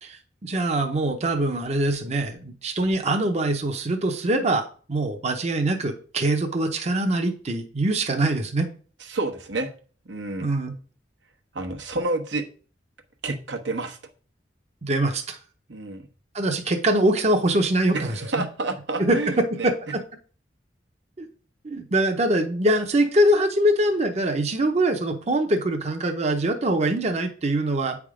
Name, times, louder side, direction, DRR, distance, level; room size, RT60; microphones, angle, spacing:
voice 1, 0.0-8.7 10.4-10.8 14.8-15.4 16.3-18.2 19.0-19.2 19.6-19.7 21.2-21.3 21.6-28.0, right 1 dB, 40° right, 4 dB, 0.8 m, -23 dB
voice 2, 9.0-9.7 10.0-10.5 11.5-12.4 13.2-14.0 15.7-16.1 17.9-19.7, right 2 dB, 80° right, 4 dB, 1.1 m, -29 dB
8.5 x 3.6 x 4.9 m, 0.41 s
head